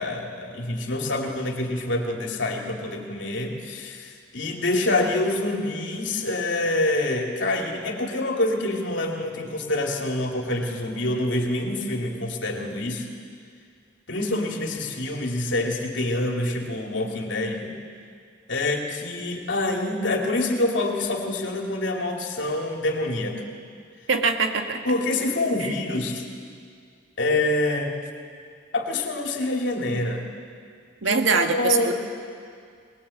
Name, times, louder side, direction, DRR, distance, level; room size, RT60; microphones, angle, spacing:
voice 1, 0.0-13.1 14.1-17.7 18.5-23.4 24.8-26.2 27.2-28.0 28.7-30.3 31.0-31.9, left 2 dB, 70° left, 1 dB, 2.9 m, -26 dB
voice 2, 24.1-24.8 31.0-31.9, right 4 dB, 90° right, 5 dB, 1.8 m, -22 dB
21.5 x 20.5 x 8.6 m, 2.2 s
head